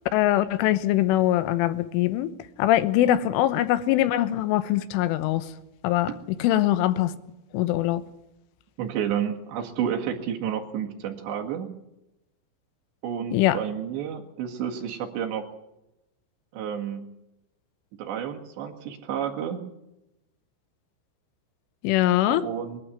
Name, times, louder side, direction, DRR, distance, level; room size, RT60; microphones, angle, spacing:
voice 1, 0.1-2.3 2.6-5.5 5.8-6.1 6.4-7.1 7.5-8.0 13.3-13.6 21.8-22.4, left 13 dB, 90° left, 13 dB, 3.5 m, -22 dB
voice 2, 8.8-11.7 13.0-15.4 16.5-17.1 18.0-19.6 22.3-22.8, right 9 dB, 65° right, 3 dB, 3.9 m, -30 dB
22.0 x 12.0 x 9.7 m, 0.90 s
omnidirectional pair, 5.7 m